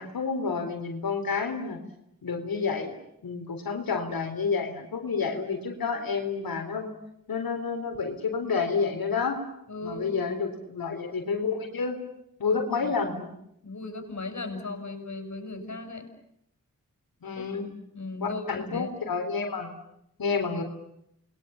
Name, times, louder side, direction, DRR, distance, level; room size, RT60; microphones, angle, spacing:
voice 1, 0.0-1.8 2.2-2.9 3.2-6.9 7.3-9.4 9.8-12.0 12.4-13.3 17.2-17.8 18.2-19.7 20.2-20.6, left 5 dB, 85° left, 5 dB, 3.8 m, -29 dB
voice 2, 9.7-10.1 12.5-13.2 13.6-16.1 17.4-17.6 17.9-18.9, left 2 dB, 55° left, 6 dB, 7.3 m, -37 dB
29.0 x 22.5 x 7.1 m, 0.75 s
cardioid pair, 40°, 34 cm